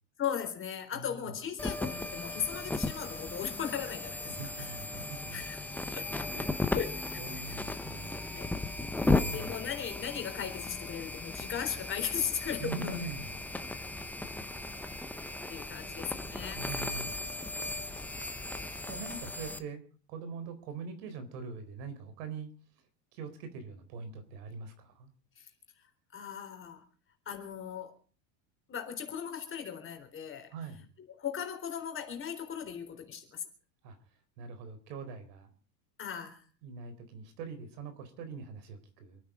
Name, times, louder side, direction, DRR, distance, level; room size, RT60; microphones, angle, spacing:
voice 1, 0.2-4.8 5.3-6.5 6.7-7.6 8.3-8.5 9.3-13.0 15.5-16.7 25.4-25.5 26.1-26.8 27.3-28.0 28.7-30.5 31.2-33.5 36.0-36.4, left 8 dB, 25° left, 3.9 m, -37 dB
voice 2, 0.9-1.3 4.2-5.4 6.4-6.7 7.2-8.3 9.0-9.5 12.6-13.3 16.5-17.1 18.8-19.8 20.1-22.5 23.1-25.1 30.5-30.9 33.8-34.0 34.4-35.5 36.6-39.2, right 4 dB, 70° right, 4.3 m, -43 dB
sound 1, 1.6-19.6, left 2 dB, 5° left, 0.9 m, -36 dB
27.5 x 9.5 x 5.1 m
supercardioid pair, 140°, 49 cm